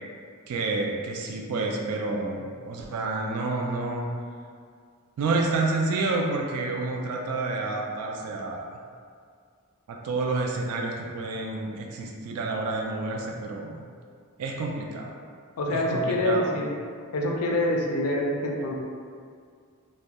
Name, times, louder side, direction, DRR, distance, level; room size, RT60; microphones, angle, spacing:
voice 1, 0.5-4.1 5.2-8.8 9.9-13.8 14.4-15.2 15.7-16.6, right 3 dB, 85° right, 0 dB, 0.3 m, -29 dB
voice 2, 15.6-16.7 17.1-18.7, left 1 dB, 75° left, -1 dB, 0.4 m, -26 dB
2.2 x 2.1 x 2.7 m, 2.1 s
head